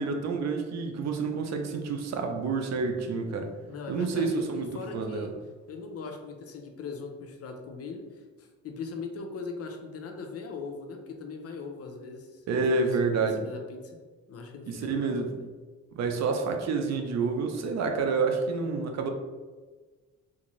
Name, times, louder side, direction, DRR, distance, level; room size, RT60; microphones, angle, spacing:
voice 1, 0.0-3.5 3.9-5.3 12.5-13.4 14.7-15.3 15.9-19.1, right 4 dB, 60° right, 4 dB, 0.6 m, -28 dB
voice 2, 3.7-5.3 5.7-14.0 14.3-15.5, left 4 dB, 50° left, 3 dB, 0.6 m, -40 dB
3.5 x 2.6 x 3.1 m, 1.4 s
cardioid pair, 90°, 30 cm